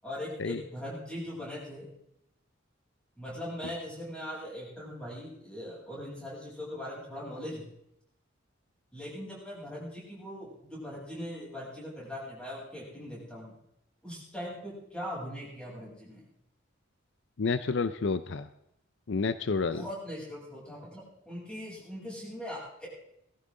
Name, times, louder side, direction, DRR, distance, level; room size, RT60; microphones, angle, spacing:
voice 1, 0.0-1.9 3.2-7.7 8.9-13.5 14.0-16.2 19.7-22.9, left 1 dB, 5° left, -6 dB, 7.9 m, -40 dB
voice 2, 17.4-18.5 19.1-19.8, left 4 dB, 60° left, 12 dB, 0.5 m, -29 dB
20.0 x 15.0 x 3.8 m, 0.79 s
head